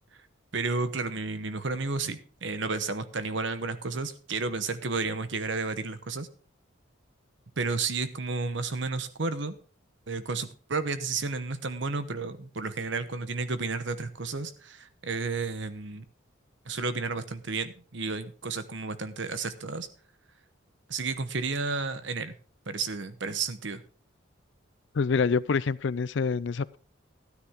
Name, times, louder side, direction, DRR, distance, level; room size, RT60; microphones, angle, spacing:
voice 1, 0.5-6.3 7.6-9.5 10.1-16.0 16.6-19.9 20.9-22.3 22.7-23.8, right 4 dB, 65° right, 12 dB, 1.0 m, -32 dB
voice 2, 24.9-26.8, left 5 dB, 60° left, 19 dB, 0.4 m, -26 dB
13.0 x 9.5 x 3.6 m, 0.40 s
head